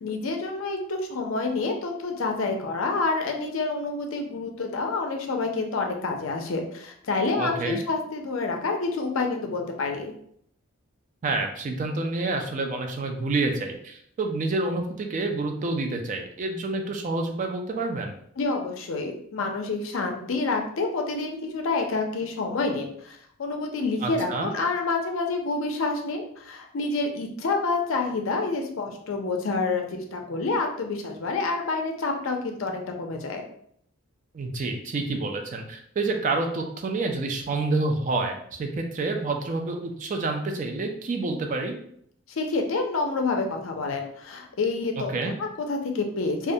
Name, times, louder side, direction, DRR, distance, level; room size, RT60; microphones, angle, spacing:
voice 1, 0.0-10.1 18.4-33.4 42.3-46.5, left 3 dB, 65° left, 3 dB, 0.4 m, -28 dB
voice 2, 7.4-7.8 11.2-18.1 24.0-24.5 34.3-41.8 45.0-45.4, right 3 dB, 35° right, 4 dB, 0.3 m, -28 dB
2.3 x 2.1 x 2.6 m, 0.66 s
head